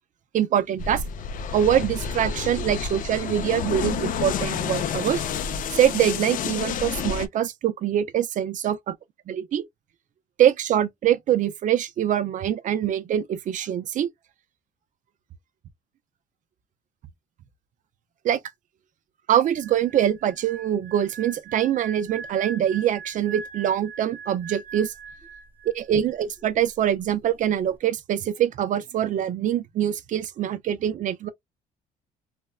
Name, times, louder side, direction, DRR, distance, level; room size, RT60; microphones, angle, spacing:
voice 1, 0.3-1.0 1.5-5.2 5.7-8.8 9.3-9.7 10.4-14.1 18.2-18.4 19.3-24.9 25.6-31.3, right 10 dB, 50° right, 0.5 m, -24 dB
sound 1, 0.8-7.3, left 7 dB, 55° left, 0.5 m, -29 dB
sound 2, 19.5-25.9 26.2-26.5, right 6 dB, 10° right, 1.0 m, -41 dB
3.3 x 2.1 x 2.3 m
cardioid pair, 110°, 17 cm